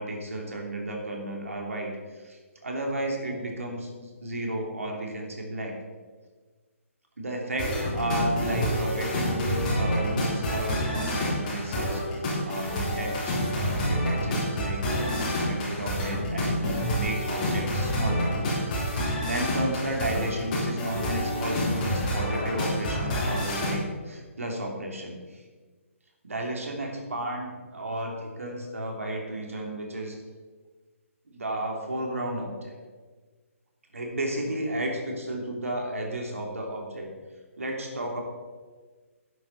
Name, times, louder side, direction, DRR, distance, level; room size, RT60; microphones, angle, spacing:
voice 1, 0.0-5.7 7.2-18.3 18.8-25.4 26.2-30.2 31.3-32.7 33.9-37.1 37.6-38.2, right 1 dB, 70° right, 1 dB, 3.2 m, -33 dB
sound 1, 7.6-23.8, equal, 35° left, 4.1 m, -28 dB
12.5 x 10.5 x 4.3 m, 1.4 s
figure-of-eight pair, 135°, 8 cm